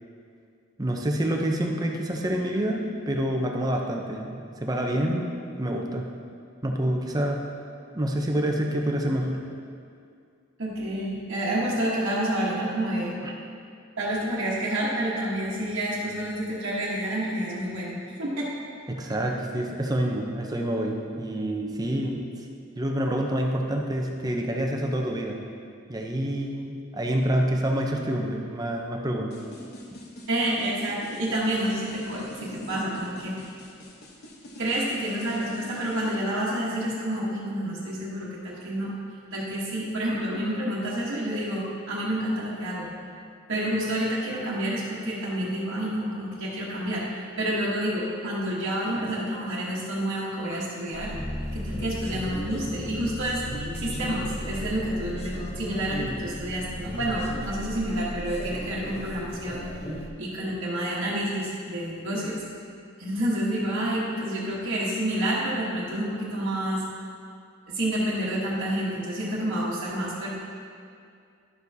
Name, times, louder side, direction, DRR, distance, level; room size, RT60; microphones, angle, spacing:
voice 1, 0.8-5.3 5.6-6.1 6.6-7.4 7.9-9.4 13.2-13.3 18.9-22.2 22.8-25.4 25.9-29.3 59.9-60.0, right 1 dB, 20° right, 1 dB, 0.6 m, -27 dB
voice 2, 10.6-13.1 14.0-18.5 30.3-33.4 34.6-38.9 39.3-42.9 43.5-51.1 51.5-53.4 53.7-59.6 60.2-62.4 63.0-66.8 67.7-70.3, right 1 dB, 55° right, -9 dB, 1.2 m, -29 dB
sound 1, 29.3-36.2, left 1 dB, 50° left, 1.0 m, -43 dB
sound 2, 50.9-60.1, equal, 30° left, 0.5 m, -36 dB
Bass guitar, 51.1-57.4, left 1 dB, 70° left, 0.9 m, -39 dB
11.0 x 6.9 x 2.7 m, 2.3 s
head